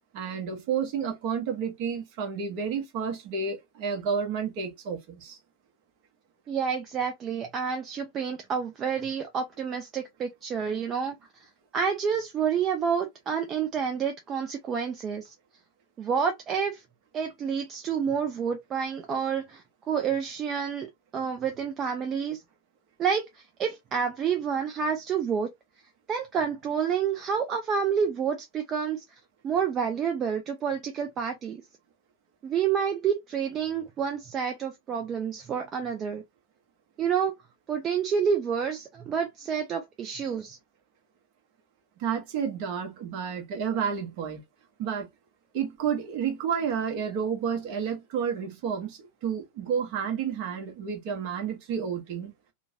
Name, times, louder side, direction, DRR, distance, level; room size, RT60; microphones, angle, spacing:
voice 1, 0.1-5.4 42.0-44.4 44.8-45.1 45.5-52.3, right 7 dB, 45° right, 1.0 m, -30 dB
voice 2, 6.5-11.2 11.7-15.3 16.0-16.8 17.1-20.9 21.1-22.4 23.0-25.5 26.1-29.0 29.4-31.6 32.4-36.2 37.0-37.3 37.7-40.6, right 7 dB, 30° right, 0.5 m, -29 dB
2.9 x 2.2 x 2.7 m
figure-of-eight pair, 90°, 0 cm